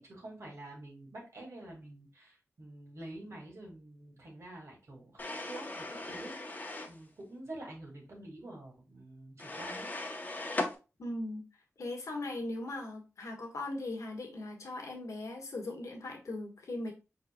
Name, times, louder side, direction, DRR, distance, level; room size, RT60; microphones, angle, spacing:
voice 1, 0.0-6.6 6.9-9.9, right 1 dB, 65° right, -1 dB, 2.1 m, -48 dB
sound 1, 5.2-7.0 9.4-10.7, left 2 dB, 35° left, 0.9 m, -38 dB
voice 2, 11.0-11.4 11.8-16.9, left 2 dB, 80° left, 2 dB, 1.4 m, -39 dB
5.4 x 4.1 x 2.3 m, 0.31 s
wide cardioid pair, 100°, 5 cm